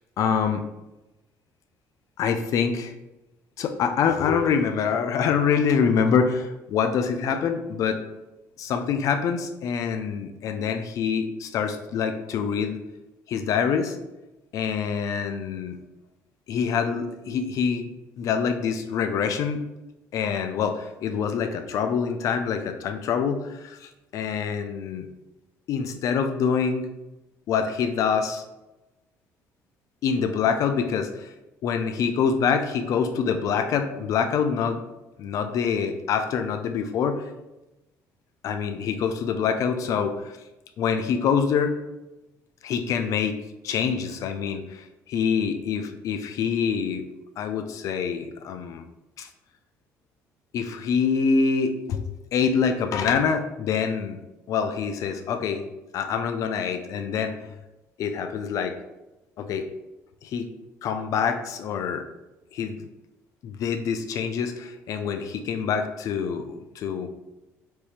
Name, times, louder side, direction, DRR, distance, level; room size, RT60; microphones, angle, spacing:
voice 1, 0.2-0.6 2.2-2.9 3.6-8.0 8.6-12.8 13.3-14.0 14.5-15.8 16.5-17.9 18.2-19.6 20.1-23.8 24.1-25.1 25.7-26.9 27.5-28.4 30.0-31.3 31.6-34.8 35.2-37.2 38.4-40.2 40.8-41.8 42.6-43.4 43.6-47.0 47.4-48.8 49.2-49.3 50.5-54.2 54.5-55.7 55.9-57.4 58.0-58.7 59.4-59.6 60.2-60.5 60.8-62.0 62.5-62.8 63.4-67.1, left 6 dB, 65° left, 7 dB, 0.5 m, -25 dB
4.4 x 2.9 x 3.3 m, 0.99 s
cardioid pair, 105°, 6 cm